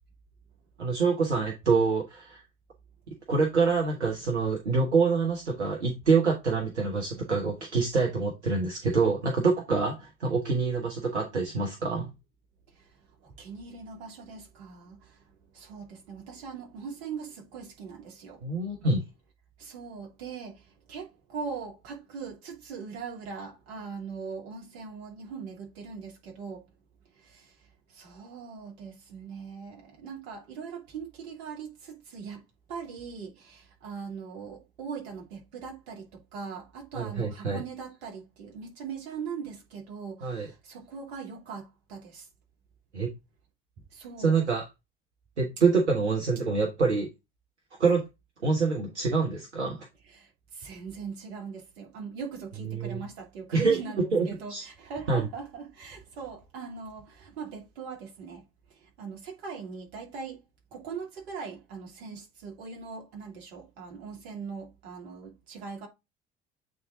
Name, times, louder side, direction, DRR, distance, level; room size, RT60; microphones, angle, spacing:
voice 1, 0.8-2.4 3.1-12.1 18.4-19.0 36.9-37.6 40.2-40.5 42.9-43.1 44.2-44.6 45.4-47.1 47.8-48.0 48.4-49.9 52.7-53.0 53.5-53.8 54.1-54.6 55.1-55.3, right 4 dB, 85° right, 1.3 m, -26 dB
voice 2, 13.2-18.4 19.6-26.6 27.2-27.5 27.9-32.4 32.7-42.3 43.9-44.4 50.1-60.4 60.7-65.9, right 5 dB, 65° right, 2.6 m, -41 dB
8.2 x 3.7 x 3.6 m
figure-of-eight pair, 60°, 33 cm